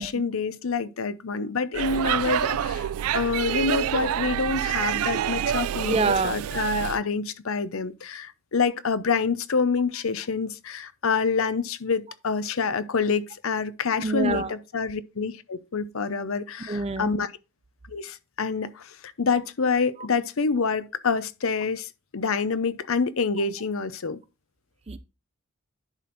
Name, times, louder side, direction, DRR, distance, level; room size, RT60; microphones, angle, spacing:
voice 1, 0.0-2.8 3.1-17.3 17.9-24.2, left 5 dB, 75° left, 0.7 m, -27 dB
Speech / Shout / Subway metro underground, 1.7-7.0, right 10 dB, 85° right, 0.3 m, -27 dB
voice 2, 5.9-6.4 14.0-14.5 16.6-17.1 24.9-25.0, right 4 dB, 30° right, 0.5 m, -26 dB
10.5 x 4.3 x 4.0 m
head